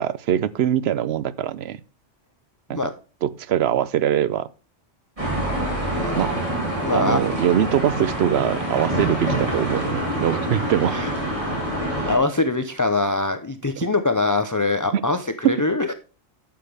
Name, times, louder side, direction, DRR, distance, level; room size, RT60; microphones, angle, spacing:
voice 1, 0.0-1.8 2.7-2.8 3.2-4.5 6.2-6.3 6.9-11.0 14.9-15.0 15.4-15.5, right 10 dB, 65° right, 0.8 m, -22 dB
sound 1, 5.2-12.2, right 1 dB, 25° right, 4.0 m, -26 dB
voice 2, 5.9-6.3 6.8-7.2 10.9-11.1 12.0-15.9, left 3 dB, 25° left, 0.5 m, -23 dB
11.5 x 7.0 x 3.4 m
omnidirectional pair, 1.2 m